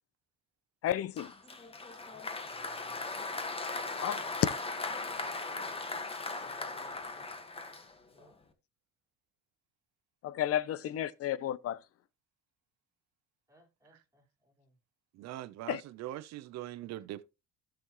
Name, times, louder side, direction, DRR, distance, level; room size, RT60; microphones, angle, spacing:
voice 1, 0.8-1.3 4.0-4.2 10.2-11.8 15.7-15.8, left 11 dB, 55° left, 0.8 m, -32 dB
Applause, 1.2-8.3, left 3 dB, 20° left, 1.6 m, -38 dB
voice 2, 2.5-3.0 3.9-4.4 5.2-5.9 6.5-7.3 8.1-8.3 13.5-14.8, equal, 10° right, 4.8 m, -60 dB
voice 3, 15.1-17.2, right 14 dB, 65° right, 0.8 m, -42 dB
15.5 x 6.4 x 3.1 m
cardioid pair, 125°, 29 cm